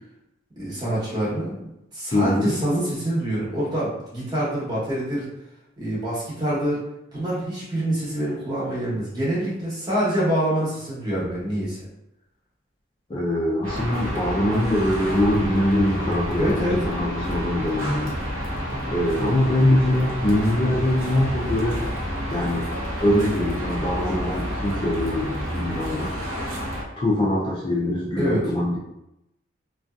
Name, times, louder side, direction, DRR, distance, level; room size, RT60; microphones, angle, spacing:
voice 1, 0.6-1.6 1.9-5.3 5.8-6.8 7.1-11.8 16.4-16.8 28.2-28.4, right 1 dB, 20° right, -8 dB, 0.9 m, -25 dB
voice 2, 2.1-2.5 13.1-18.1 18.9-21.8 22.3-22.7 23.0-26.1 27.0-28.8, left 1 dB, 25° left, -5 dB, 0.3 m, -23 dB
sound 1, 13.6-26.8, equal, 90° right, 0.7 m, -29 dB
2.6 x 2.3 x 2.3 m, 0.86 s
head